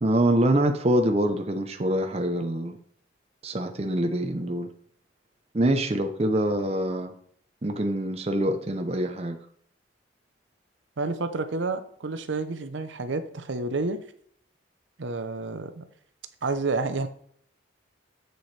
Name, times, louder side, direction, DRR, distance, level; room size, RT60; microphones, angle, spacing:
voice 1, 0.0-2.8 3.4-4.7 5.5-7.1 7.6-9.4, right 1 dB, 30° right, 5 dB, 0.6 m, -25 dB
voice 2, 11.0-14.0 15.0-15.8 16.4-17.1, right 3 dB, 70° right, 9 dB, 0.7 m, -29 dB
7.8 x 6.8 x 3.3 m, 0.62 s
head